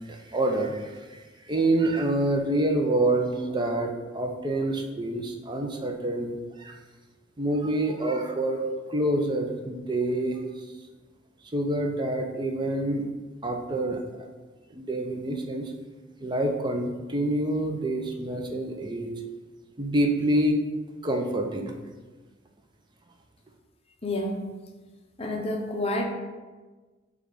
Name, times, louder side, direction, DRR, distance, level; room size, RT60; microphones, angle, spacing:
voice 1, 0.0-6.8 7.4-8.6 8.9-10.4 11.5-13.0 13.4-14.3 14.7-15.7 16.2-19.1 19.8-20.6 21.0-21.7, right 1 dB, 25° right, 3 dB, 0.6 m, -27 dB
voice 2, 24.0-24.6 25.2-26.0, left 1 dB, 30° left, 2 dB, 0.7 m, -29 dB
7.1 x 2.5 x 5.4 m, 1.3 s
head